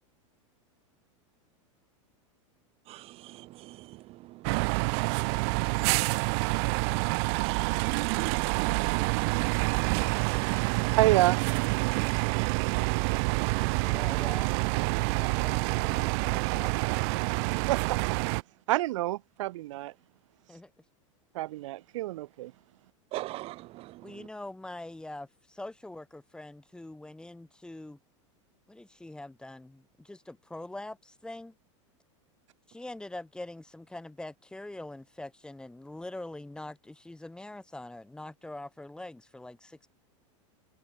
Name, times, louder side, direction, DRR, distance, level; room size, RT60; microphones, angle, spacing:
voice 1, 2.9-4.0 7.5-7.8 23.1-23.9, right 18 dB, 35° right, 0.6 m, -41 dB
sound 1, 4.4-18.4, right 34 dB, 55° right, 1.2 m, -27 dB
voice 2, 11.0-11.4 17.7-18.2 18.7-19.9 21.3-22.5, right 17 dB, 75° right, 0.9 m, -27 dB
voice 3, 13.8-14.6 15.0-16.7 20.5-20.7 24.0-28.0 28.7-31.5 32.7-39.9, left 2 dB, 5° left, 3.2 m, -43 dB
supercardioid pair, 130°, 16 cm